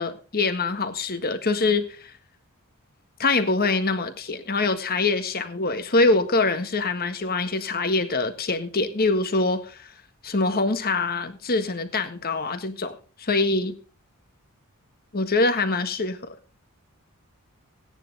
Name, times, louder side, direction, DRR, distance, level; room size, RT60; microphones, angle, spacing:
voice 1, 0.0-2.1 3.2-9.9 10.2-13.7 15.1-16.4, left 3 dB, 45° left, 1.6 m, -24 dB
17.0 x 9.9 x 3.4 m
head